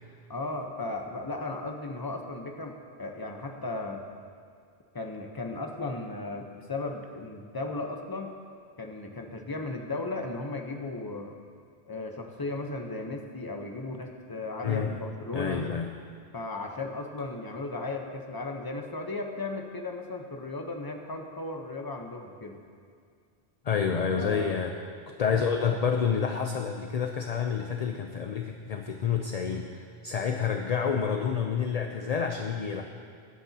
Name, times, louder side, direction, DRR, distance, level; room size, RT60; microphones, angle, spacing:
voice 1, 0.3-4.0 4.9-8.3 8.8-11.3 11.9-15.7 16.3-22.6 24.1-24.6, left 2 dB, 20° left, 3 dB, 0.9 m, -36 dB
voice 2, 15.3-15.9 23.6-24.8 25.1-32.8, left 6 dB, 45° left, 4 dB, 0.6 m, -29 dB
20.5 x 9.8 x 2.9 m, 2.2 s
omnidirectional pair, 1.1 m